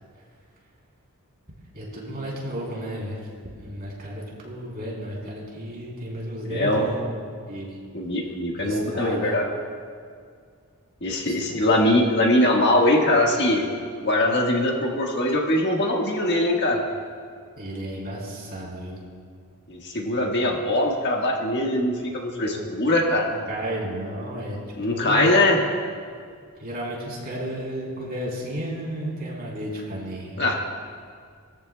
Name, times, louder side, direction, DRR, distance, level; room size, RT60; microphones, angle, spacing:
voice 1, 1.7-3.2 3.6-7.2 7.5-7.8 8.5-9.3 11.3-11.7 17.6-19.0 22.5-22.6 23.3-24.6 24.9-25.3 26.6-30.6, right 1 dB, 45° right, -4 dB, 3.3 m, -33 dB
voice 2, 6.5-6.9 7.9-9.5 11.0-13.7 14.0-16.8 19.7-23.3 24.8-25.6 30.4-30.6, left 1 dB, 50° left, 0 dB, 1.5 m, -22 dB
20.0 x 13.5 x 2.2 m, 2.1 s
head